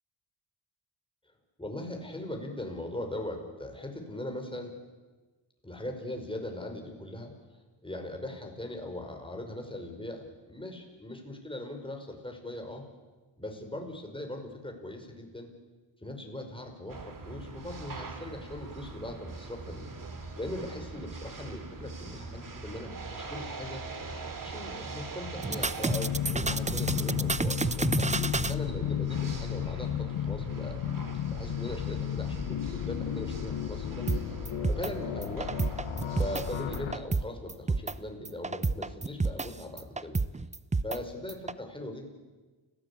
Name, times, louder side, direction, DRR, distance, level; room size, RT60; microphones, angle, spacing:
voice 1, 1.6-4.7 5.6-7.3 7.8-12.8 13.4-15.5 16.0-19.9 20.4-23.8 24.4-30.8 31.3-34.1 34.7-35.5 36.1-40.2 40.8-42.1, left 1 dB, 10° left, 3 dB, 5.4 m, -40 dB
sound 1, 16.9-36.8, right 3 dB, 45° right, 3.2 m, -42 dB
sound 2, 25.4-28.5 34.1-34.2 34.4-34.9 35.2-36.4 36.7-37.2 37.5-37.9 38.2-39.5 39.8-41.0 41.3-41.5, right 3 dB, 15° right, 0.7 m, -29 dB
sound 3, 25.9-36.9, left 11 dB, 85° left, 1.3 m, -33 dB
29.5 x 16.5 x 8.6 m, 1.3 s
cardioid pair, 85°, 46 cm